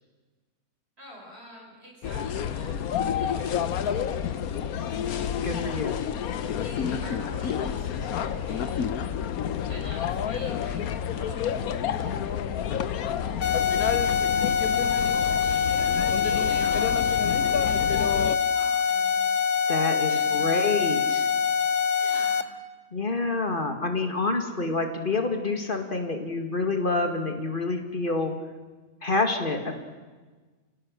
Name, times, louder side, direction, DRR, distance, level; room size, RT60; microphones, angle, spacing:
voice 1, 1.0-6.1 6.6-9.2 9.7-12.6 12.9-17.5 18.1-19.4 20.1-21.0 21.3-21.4 21.9-22.5, equal, 45° right, -1 dB, 5.1 m, -48 dB
sound 1, 2.0-18.4, left 8 dB, 80° left, 1.3 m, -29 dB
voice 2, 5.4-6.0 19.7-21.3 22.9-28.3 29.0-29.7, left 3 dB, 35° left, 5 dB, 2.2 m, -27 dB
sound 2, 13.4-22.4, left 6 dB, 60° left, 1.2 m, -24 dB
29.5 x 17.0 x 6.4 m, 1.3 s
omnidirectional pair, 1.5 m